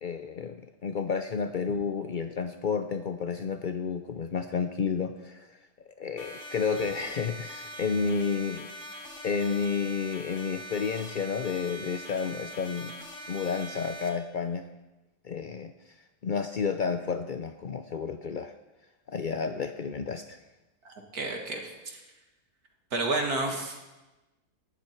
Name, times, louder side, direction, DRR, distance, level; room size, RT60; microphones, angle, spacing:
voice 1, 0.0-5.5 6.0-8.7 9.2-12.9 13.3-14.7 15.2-15.7 16.2-18.5 19.1-20.4, left 5 dB, 75° left, 8 dB, 0.4 m, -31 dB
sound 1, 6.2-14.1, right 1 dB, 50° left, 2.3 m, -43 dB
voice 2, 20.8-22.0 22.9-23.8, right 2 dB, 70° right, 2 dB, 2.5 m, -31 dB
19.0 x 12.5 x 4.4 m, 1.1 s
omnidirectional pair, 1.7 m